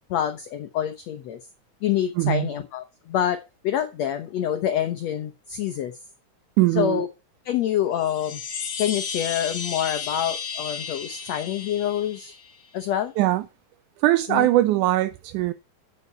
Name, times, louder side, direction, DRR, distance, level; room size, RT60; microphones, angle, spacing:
voice 1, 0.1-1.4 1.8-5.9 6.8-7.1 7.5-8.4 8.8-12.4 12.7-13.1 14.3-14.5, left 10 dB, 65° left, 1.7 m, -26 dB
voice 2, 2.2-2.5 6.6-7.1 13.2-13.5 14.0-15.5, right 16 dB, 75° right, 1.9 m, -21 dB
Chime, 7.9-12.6, left 6 dB, 45° left, 2.2 m, -34 dB
9.8 x 6.8 x 5.7 m
omnidirectional pair, 4.0 m